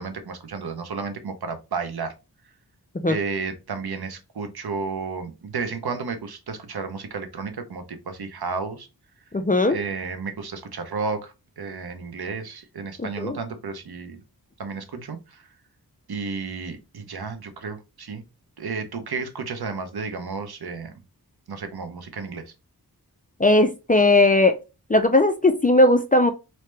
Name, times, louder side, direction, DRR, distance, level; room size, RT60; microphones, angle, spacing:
voice 1, 0.0-2.1 3.1-8.9 9.7-14.2 14.6-15.4 16.1-18.2 18.6-20.9 21.5-22.5, right 4 dB, 70° right, 0.7 m, -32 dB
voice 2, 9.3-9.8 13.2-13.4 23.4-24.6 24.9-26.3, left 2 dB, 20° left, 0.4 m, -18 dB
3.1 x 2.8 x 3.2 m
wide cardioid pair, 75°, 39 cm